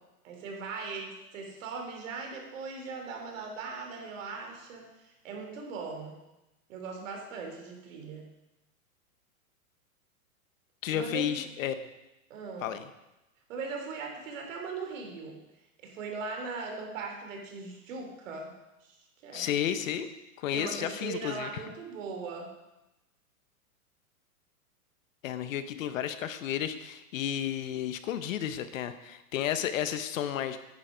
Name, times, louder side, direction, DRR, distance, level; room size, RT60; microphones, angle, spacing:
voice 1, 0.2-6.1 6.7-8.2 10.9-11.4 12.3-12.7 13.5-15.4 15.8-18.5 18.8-18.9 19.2-19.5 20.5-22.5, right 4 dB, 60° right, 2 dB, 3.3 m, -39 dB
voice 2, 10.8-11.8 12.6-12.8 19.3-20.1 20.4-21.6 25.2-30.7, left 10 dB, 60° left, 11 dB, 1.1 m, -32 dB
10.5 x 10.0 x 5.1 m, 0.96 s
hypercardioid pair, 145°, 44 cm